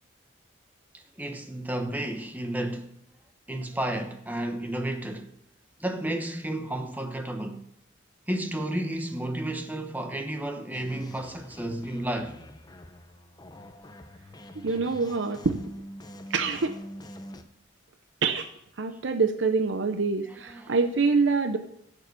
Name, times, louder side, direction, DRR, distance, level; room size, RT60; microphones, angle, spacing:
voice 1, 0.9-2.9 3.5-5.3 5.8-7.7 8.3-12.4 20.2-20.8, right 1 dB, 10° right, 1.0 m, -32 dB
sound 1, 10.7-17.4, equal, 20° left, 0.7 m, -45 dB
voice 2, 14.6-15.6 16.3-16.8 18.2-18.5 18.8-21.6, right 4 dB, 70° right, 0.6 m, -25 dB
11.0 x 7.1 x 6.8 m
head